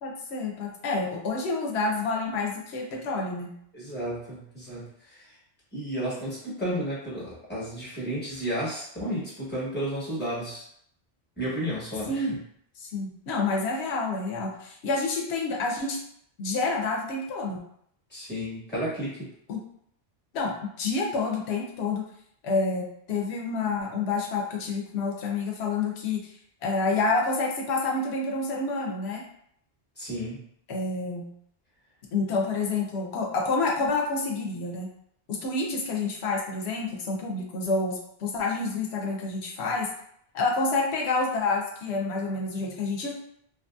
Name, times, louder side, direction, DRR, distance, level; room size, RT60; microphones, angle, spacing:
voice 1, 0.0-3.6 12.1-12.4 12.8-16.0 16.4-17.7 19.5-19.6 20.3-22.0 22.4-26.3 26.6-29.2 30.7-31.3 32.1-34.9 35.3-39.9 40.3-43.1, left 3 dB, 85° left, 0 dB, 0.9 m, -28 dB
voice 2, 3.7-5.2 5.7-10.6 11.4-12.2 18.1-19.3 30.0-30.4, equal, 10° left, -7 dB, 1.0 m, -32 dB
2.9 x 2.6 x 2.3 m, 0.69 s
omnidirectional pair, 1.1 m